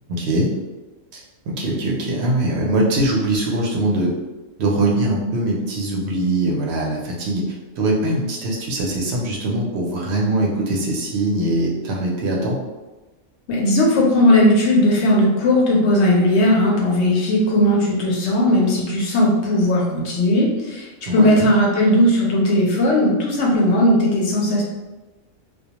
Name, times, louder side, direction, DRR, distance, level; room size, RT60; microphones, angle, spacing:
voice 1, 0.1-0.5 1.1-4.1 4.6-12.6 21.0-21.5, right 1 dB, 65° right, -2 dB, 0.7 m, -22 dB
voice 2, 13.5-20.9 21.1-24.6, left 1 dB, 65° left, -2 dB, 0.7 m, -17 dB
2.2 x 2.2 x 2.8 m, 1.1 s
omnidirectional pair, 1.5 m